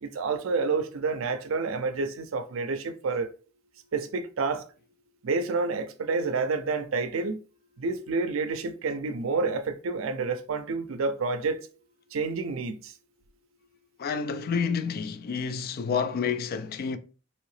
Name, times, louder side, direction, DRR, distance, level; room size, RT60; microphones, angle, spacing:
voice 1, 0.0-3.3 3.9-4.7 5.2-7.4 7.8-11.7 12.1-12.9, right 4 dB, 70° right, 0.4 m, -29 dB
voice 2, 14.0-17.0, left 6 dB, 45° left, 0.3 m, -29 dB
2.9 x 2.7 x 3.2 m
head